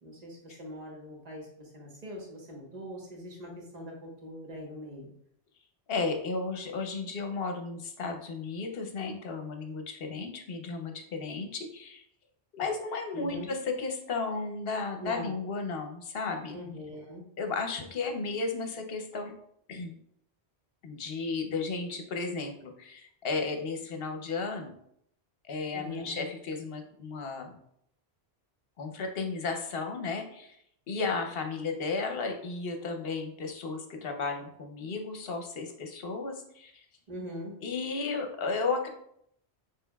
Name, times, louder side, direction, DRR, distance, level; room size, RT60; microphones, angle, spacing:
voice 1, 0.0-5.1 13.1-13.5 15.0-15.4 16.5-17.3 25.7-26.2 37.1-37.5, equal, 40° right, -1 dB, 1.2 m, -42 dB
voice 2, 5.9-12.0 12.5-16.6 17.4-19.3 19.7-20.0 20.8-24.7 25.4-27.6 28.8-30.6 30.9-36.8 37.6-38.9, left 4 dB, 65° left, 5 dB, 0.9 m, -34 dB
6.5 x 3.2 x 2.3 m, 0.70 s
omnidirectional pair, 1.1 m